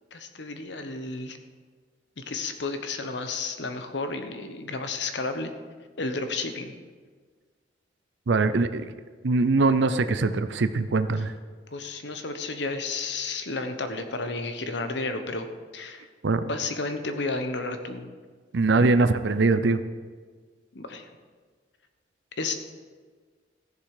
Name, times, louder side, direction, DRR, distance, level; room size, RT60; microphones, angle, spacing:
voice 1, 0.1-1.4 2.2-5.5 6.0-6.7 11.7-15.5 15.7-16.1 16.4-18.1 20.7-21.1 22.4-22.5, left 3 dB, 70° left, 8 dB, 1.0 m, -32 dB
voice 2, 8.3-8.9 9.2-11.3 16.2-16.4 18.5-19.8, right 3 dB, 75° right, 11 dB, 0.5 m, -22 dB
15.0 x 6.8 x 4.8 m, 1.5 s
head